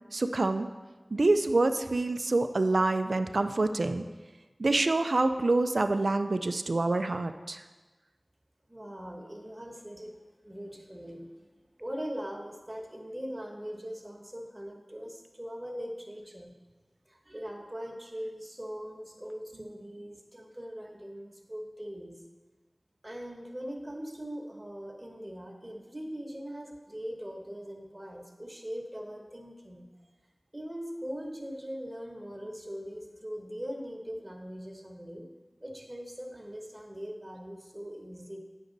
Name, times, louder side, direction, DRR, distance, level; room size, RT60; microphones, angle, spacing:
voice 1, 0.1-0.7 1.1-4.0 4.6-7.6, right 2 dB, 80° right, 8 dB, 0.4 m, -26 dB
voice 2, 8.7-10.2 10.4-11.5 11.8-16.5 17.1-22.2 23.0-29.9 30.5-35.3 35.6-38.4, equal, 25° right, 1 dB, 1.2 m, -41 dB
9.3 x 6.2 x 3.9 m, 1.3 s
wide cardioid pair, 55°, 0 cm